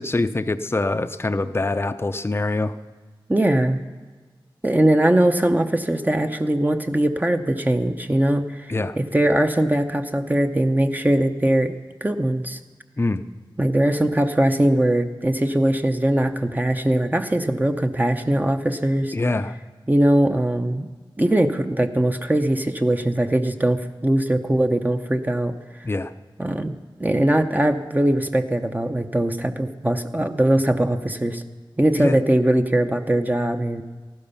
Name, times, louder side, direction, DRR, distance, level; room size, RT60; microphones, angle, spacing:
voice 1, 0.0-2.8 8.7-9.0 13.0-13.2 19.1-19.5 25.8-26.1 32.0-32.2, left 2 dB, 25° left, 10 dB, 0.5 m, -24 dB
voice 2, 3.3-3.8 4.6-11.7 12.0-12.6 13.6-19.1 19.9-20.9 21.2-25.6 26.4-26.7 27.0-31.4 31.8-33.8, right 1 dB, 20° right, 6 dB, 0.7 m, -21 dB
14.5 x 12.0 x 5.6 m, 1.3 s
wide cardioid pair, 65°, 9 cm